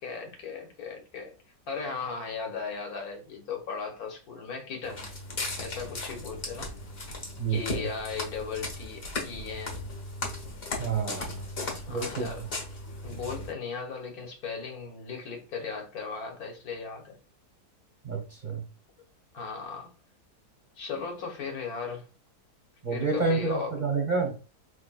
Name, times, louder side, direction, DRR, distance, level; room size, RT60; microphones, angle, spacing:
voice 1, 0.0-1.3 1.7-5.1 5.6-6.7 7.5-9.8 11.9-12.4 13.0-17.2 19.3-19.9 20.8-22.1 22.9-23.8, left 5 dB, 70° left, 1.5 m, -37 dB
Walk footsteps, 4.8-13.5, left 2 dB, 40° left, 1.2 m, -37 dB
voice 2, 7.4-7.8 10.8-11.3 11.9-12.3 18.0-18.6 22.8-24.3, right 4 dB, 35° right, 0.9 m, -29 dB
4.7 x 3.2 x 2.3 m
omnidirectional pair, 1.7 m